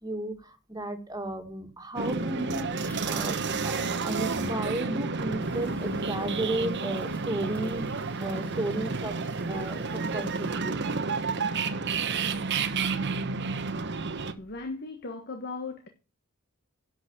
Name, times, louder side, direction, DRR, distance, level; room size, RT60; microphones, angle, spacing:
voice 1, 0.0-7.8 8.2-9.2 9.5-10.9, right 1 dB, 15° right, 2.2 m, -34 dB
sound 1, 2.0-14.3, right 4 dB, 55° right, 1.1 m, -30 dB
sound 2, 2.8-4.8 5.4-10.5, left 1 dB, 5° left, 2.4 m, -53 dB
voice 2, 14.4-15.9, left 3 dB, 50° left, 1.5 m, -37 dB
11.5 x 6.3 x 8.0 m
head